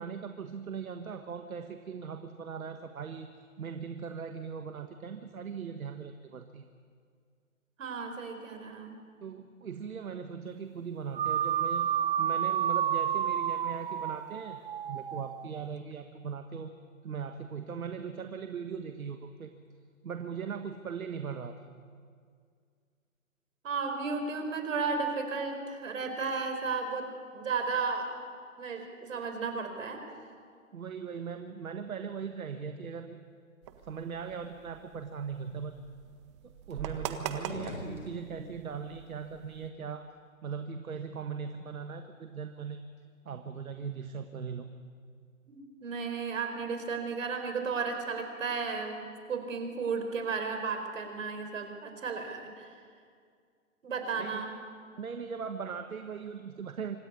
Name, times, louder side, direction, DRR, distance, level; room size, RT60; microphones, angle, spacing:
voice 1, 0.0-3.3 3.6-6.7 9.2-16.7 17.0-19.5 20.0-21.6 30.7-33.2 33.9-35.8 36.4-40.1 40.4-42.9 43.2-44.7 54.2-54.4 54.9-57.0, right 6 dB, 80° right, 7 dB, 1.6 m, -39 dB
voice 2, 7.8-9.0 23.6-27.1 27.3-28.1 28.6-30.0 45.5-52.7 53.8-54.5, right 4 dB, 65° right, 6 dB, 4.6 m, -34 dB
sound 1, 11.1-15.7, right 9 dB, 40° right, 0.6 m, -30 dB
sound 2, 33.6-39.7, right 9 dB, 20° right, 1.0 m, -43 dB
sound 3, 37.3-38.7, left 2 dB, 80° left, 6.7 m, -43 dB
26.0 x 14.5 x 9.7 m, 2.1 s
hypercardioid pair, 150°, 41 cm